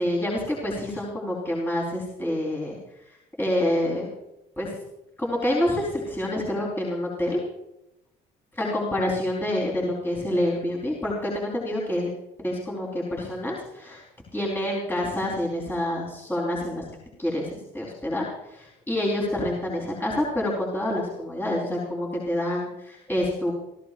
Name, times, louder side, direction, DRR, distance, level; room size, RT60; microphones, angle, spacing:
voice 1, 0.0-2.8 3.4-4.1 4.6-4.7 5.2-7.4 8.5-12.1 12.4-14.0 14.3-16.8 17.2-23.5, left 1 dB, 10° left, -5 dB, 4.1 m, -27 dB
28.5 x 14.5 x 2.6 m, 0.87 s
cardioid pair, 110°, 17 cm